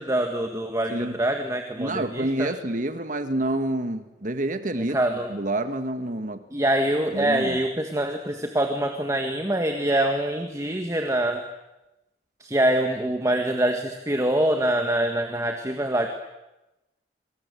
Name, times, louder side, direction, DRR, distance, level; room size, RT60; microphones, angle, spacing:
voice 1, 0.0-2.5 4.7-5.3 6.5-11.4 12.4-16.1, right 1 dB, 20° right, 4 dB, 2.0 m, -25 dB
voice 2, 1.8-5.0 5.3-6.4 7.1-7.6, right 1 dB, 45° right, 9 dB, 1.7 m, -28 dB
27.0 x 24.5 x 8.4 m, 0.96 s
head